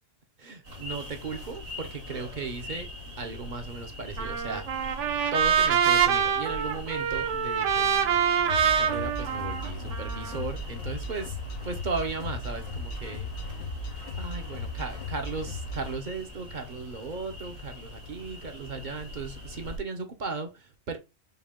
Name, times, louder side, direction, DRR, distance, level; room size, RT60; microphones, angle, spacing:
voice 1, 0.4-2.9 3.2-5.0 5.3-11.4 11.6-13.6 14.2-21.0, right 4 dB, 45° right, 0.7 m, -36 dB
sound 1, 0.6-19.8, left 1 dB, 90° right, 2.3 m, -43 dB
Trumpet, 4.2-10.4, right 7 dB, 70° right, 1.0 m, -25 dB
sound 2, 8.4-16.0, left 2 dB, 90° left, 1.4 m, -36 dB
5.5 x 2.3 x 3.6 m
omnidirectional pair, 1.3 m